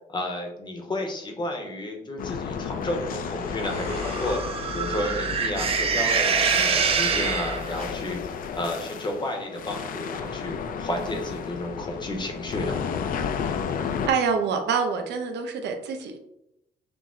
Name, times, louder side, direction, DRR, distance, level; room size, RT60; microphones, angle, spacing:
voice 1, 0.1-4.4 4.7-12.8, left 1 dB, 25° left, 3 dB, 0.7 m, -32 dB
sound 1, 2.2-14.1, left 6 dB, 55° left, 0.4 m, -33 dB
sound 2, 3.6-7.9, right 5 dB, 35° right, 0.4 m, -25 dB
voice 2, 14.1-16.2, right 5 dB, 80° right, 5 dB, 0.7 m, -26 dB
6.0 x 2.0 x 3.6 m, 0.82 s
cardioid pair, 165°, 18 cm